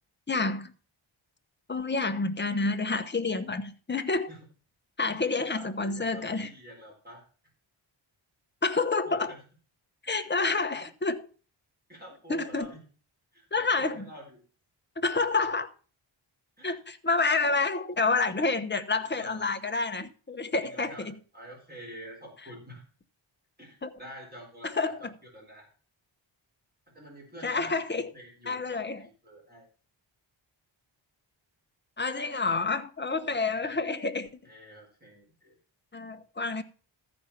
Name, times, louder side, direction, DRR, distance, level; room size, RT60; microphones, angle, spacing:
voice 1, 0.3-0.7 1.7-4.3 5.0-6.5 8.6-9.3 10.0-11.3 12.3-12.7 13.5-14.1 15.0-15.7 16.6-21.1 23.8-23.9 24.6-25.1 27.4-28.1 28.5-29.1 32.0-34.3 35.9-36.6, left 3 dB, 20° left, 0.9 m, -28 dB
voice 2, 5.4-7.2 9.1-9.4 10.1-10.6 11.9-12.8 13.3-14.4 16.6-16.8 19.0-19.5 20.6-22.8 23.6-24.9 25.3-25.7 26.9-29.7 33.3-33.8 34.4-35.6, equal, 20° right, 4.2 m, -48 dB
13.5 x 5.2 x 5.8 m
wide cardioid pair, 120°, 48 cm